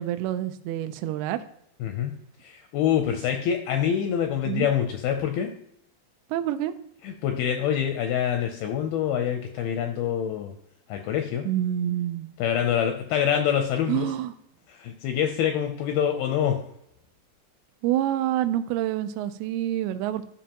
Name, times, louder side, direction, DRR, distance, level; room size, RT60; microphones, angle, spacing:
voice 1, 0.0-1.4 4.5-4.7 6.3-6.7 11.5-12.3 13.9-14.3 17.8-20.3, right 12 dB, 80° right, 10 dB, 2.4 m, -27 dB
voice 2, 1.8-2.1 2.4-5.5 7.0-10.5 10.9-11.5 12.4-14.1 14.7-16.6, left 9 dB, 80° left, 5 dB, 2.2 m, -25 dB
12.5 x 5.3 x 2.9 m, 0.73 s
omnidirectional pair, 4.8 m